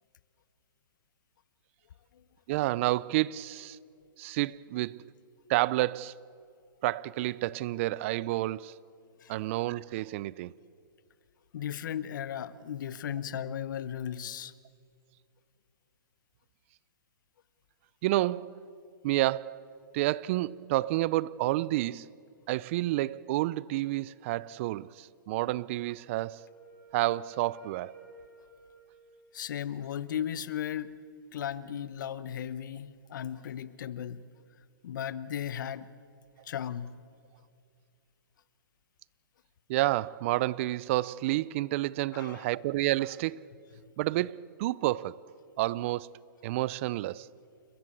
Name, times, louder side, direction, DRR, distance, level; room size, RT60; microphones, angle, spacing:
voice 1, 2.5-3.8 4.2-5.0 5.5-6.1 6.8-8.7 9.3-10.5 18.0-18.6 19.0-19.6 19.9-22.1 22.5-26.5 26.9-27.9 39.7-43.4 44.0-45.2 45.6-46.1 46.4-47.3, right 17 dB, 35° right, 0.4 m, -29 dB
voice 2, 11.5-14.5 29.3-30.9 31.3-34.2 34.8-35.9 36.4-36.9 42.1-42.5, left 9 dB, 60° left, 1.0 m, -36 dB
Wind instrument woodwind instrument, 26.0-29.8, right 3 dB, 55° right, 7.0 m, -55 dB
29.5 x 14.0 x 8.4 m
hypercardioid pair, 150°, 11 cm